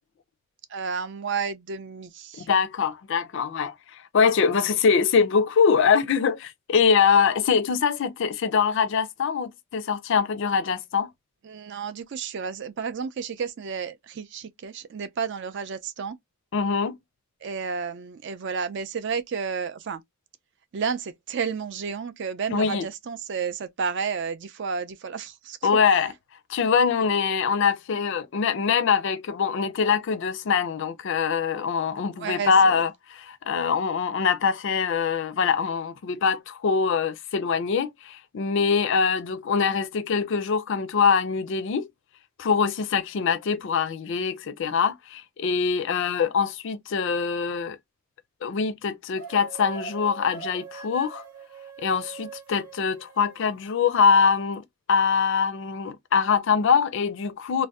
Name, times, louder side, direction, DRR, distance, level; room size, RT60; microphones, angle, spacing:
voice 1, 0.7-2.5 11.4-16.2 17.4-20.0 20.7-25.7 32.2-32.8, right 6 dB, 50° right, 0.4 m, -31 dB
voice 2, 2.4-11.1 16.5-17.0 22.5-22.9 25.6-26.1 26.5-41.9 42.4-47.8 48.4-51.2 51.8-54.6 54.9-57.7, left 6 dB, 55° left, 0.4 m, -23 dB
sound 1, 49.1-53.6, right 5 dB, 80° right, 0.9 m, -42 dB
2.6 x 2.0 x 3.4 m
head